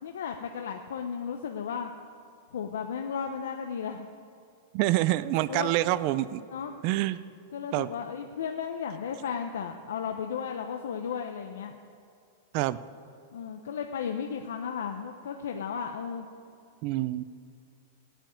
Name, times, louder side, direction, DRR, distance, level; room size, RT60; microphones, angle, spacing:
voice 1, 0.0-1.9 2.5-4.1 5.5-5.8 6.5-6.8 7.5-11.8 13.3-16.3, left 7 dB, 85° left, 5 dB, 0.9 m, -34 dB
voice 2, 4.7-6.4 6.8-7.2 7.7-7.9 12.5-12.8 16.8-17.2, right 16 dB, 45° right, 15 dB, 0.5 m, -26 dB
16.0 x 8.9 x 9.3 m, 2.4 s
supercardioid pair, 150°, 0 cm